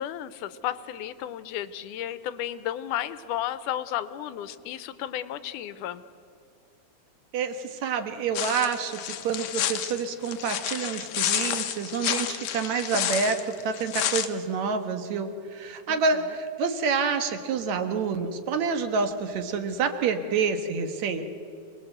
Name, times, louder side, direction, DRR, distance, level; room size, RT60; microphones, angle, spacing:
voice 1, 0.0-6.0 15.9-16.0, left 11 dB, 90° left, 14 dB, 2.3 m, -33 dB
voice 2, 7.3-21.2, right 5 dB, 65° right, 7 dB, 2.5 m, -28 dB
sound 1, 8.3-14.3, left 10 dB, 70° left, 2.1 m, -30 dB
27.0 x 19.5 x 7.8 m, 2.5 s
omnidirectional pair, 3.6 m